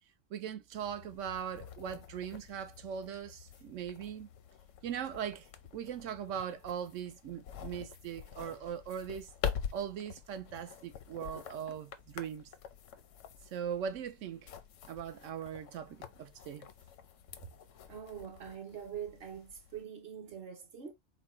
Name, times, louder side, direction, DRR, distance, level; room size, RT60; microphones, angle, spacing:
voice 1, 0.3-4.3 4.8-5.5 5.7-9.3 9.7-12.5 13.5-14.5 14.9-16.7, right 8 dB, 85° right, 1.0 m, -40 dB
sound 1, 0.7-19.8, left 8 dB, 90° left, 1.0 m, -46 dB
voice 2, 17.9-20.9, right 8 dB, 55° right, 1.0 m, -44 dB
4.6 x 2.2 x 4.3 m
omnidirectional pair, 1.3 m